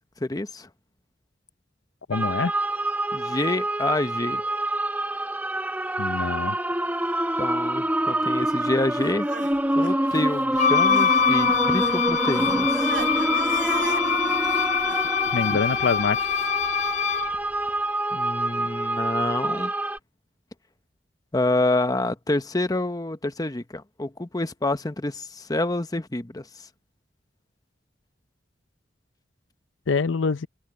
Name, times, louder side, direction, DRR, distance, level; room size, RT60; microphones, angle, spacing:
voice 1, 0.2-0.7 3.1-4.4 7.4-9.3 9.8-12.9 15.5-15.6 18.1-19.7 21.3-26.7, left 2 dB, 20° left, 0.9 m, -27 dB
voice 2, 2.1-2.5 6.0-6.6 15.3-16.2 29.9-30.5, left 4 dB, 85° left, 0.6 m, -25 dB
sound 1, 2.1-20.0, right 1 dB, 10° right, 0.9 m, -26 dB
Crying sobbing, 9.0-11.2 11.5-16.5, right 4 dB, 90° right, 2.1 m, -39 dB
Wind instrument woodwind instrument, 10.6-17.3, left 7 dB, 40° left, 0.3 m, -24 dB
head